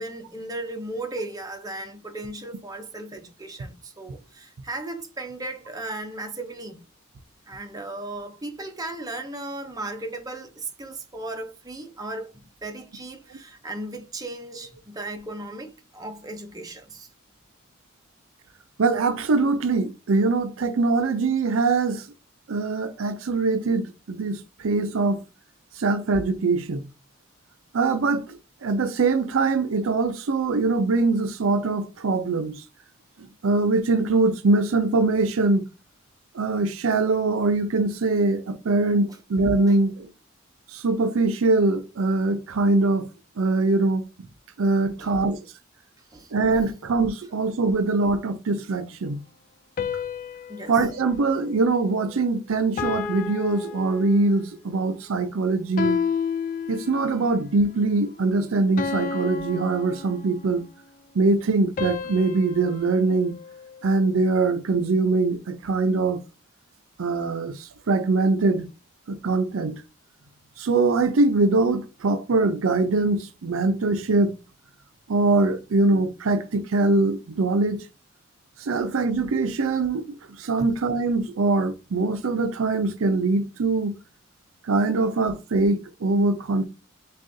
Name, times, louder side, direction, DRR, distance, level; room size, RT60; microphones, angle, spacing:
voice 1, 0.0-6.8 7.5-17.1 39.7-39.8 45.0-45.2 46.0-46.3 49.8-49.9 50.5-50.9 80.6-80.7, right 2 dB, 15° right, 0.5 m, -36 dB
voice 2, 18.8-22.0 22.5-25.2 25.8-26.9 27.7-32.6 33.4-35.6 36.3-40.1 40.7-43.1 43.4-44.0 44.6-45.4 46.3-49.2 50.7-56.0 56.7-60.7 61.1-63.4 63.8-66.2 67.0-68.7 69.1-69.8 70.6-74.3 75.1-77.9 78.6-83.9 84.6-86.7, right 3 dB, 70° right, 0.5 m, -23 dB
sound 1, 49.8-52.3 52.8-54.5 55.8-57.3 58.8-60.6 61.8-64.1, left 6 dB, 35° left, 0.3 m, -32 dB
6.1 x 2.3 x 2.6 m
head